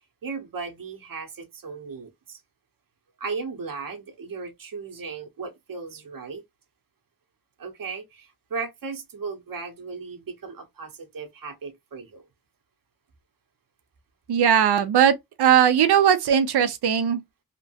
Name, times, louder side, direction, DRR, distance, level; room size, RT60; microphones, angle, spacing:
voice 1, 0.2-2.4 3.2-6.4 7.6-12.2, right 4 dB, 60° right, 0.8 m, -36 dB
voice 2, 14.3-17.2, right 9 dB, 85° right, 0.6 m, -19 dB
2.9 x 2.1 x 2.7 m
cardioid pair, 40°, 38 cm